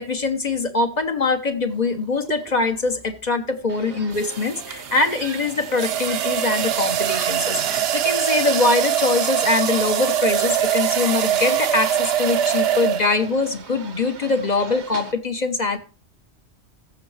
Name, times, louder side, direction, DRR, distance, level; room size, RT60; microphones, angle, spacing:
voice 1, 0.0-15.8, left 3 dB, 45° left, 6 dB, 0.9 m, -23 dB
sound 1, 2.2-2.5 4.2-13.4, right 10 dB, 65° right, 0.8 m, -23 dB
sound 2, 3.7-15.1, right 5 dB, 85° right, 1.3 m, -39 dB
15.0 x 6.3 x 3.3 m, 0.36 s
omnidirectional pair, 1.1 m